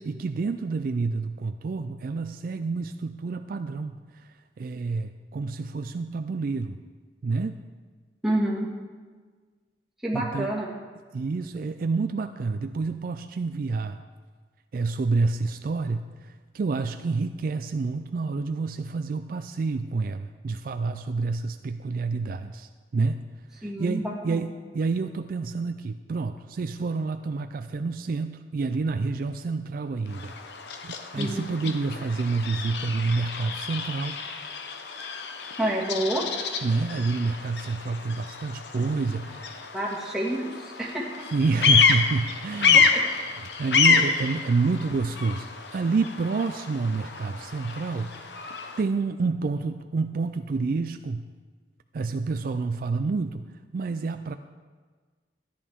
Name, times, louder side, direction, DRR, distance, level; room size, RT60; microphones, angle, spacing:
voice 1, 0.1-4.3 4.6-6.8 7.2-7.6 10.1-10.5 11.1-14.0 14.7-23.2 23.6-30.3 30.8-34.2 36.6-39.7 41.3-42.9 43.3-48.1 48.8-51.3 51.9-53.5 53.7-54.4, right 4 dB, 55° right, 9 dB, 0.4 m, -28 dB
voice 2, 8.2-8.7 10.0-10.7 23.6-24.4 31.2-31.4 35.6-36.2 39.7-41.0 42.9-43.0, right 1 dB, ahead, -5 dB, 1.9 m, -28 dB
Bird vocalization bird call bird song, 30.1-48.8, left 5 dB, 75° left, 0.8 m, -28 dB
13.5 x 10.0 x 3.6 m, 1.5 s
head